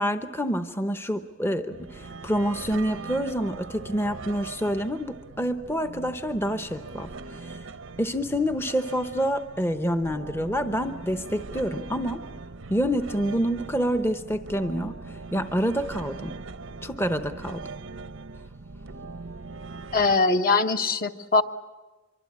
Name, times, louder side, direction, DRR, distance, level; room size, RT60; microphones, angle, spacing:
voice 1, 0.0-7.6 8.0-12.2 12.7-16.3 16.8-17.6, equal, 10° left, 9 dB, 0.8 m, -27 dB
sound 1, 1.7-20.2, right 3 dB, 85° right, 0.8 m, -41 dB
voice 2, 19.9-21.4, left 3 dB, 45° left, 7 dB, 1.1 m, -22 dB
24.5 x 24.0 x 8.6 m, 1.3 s
head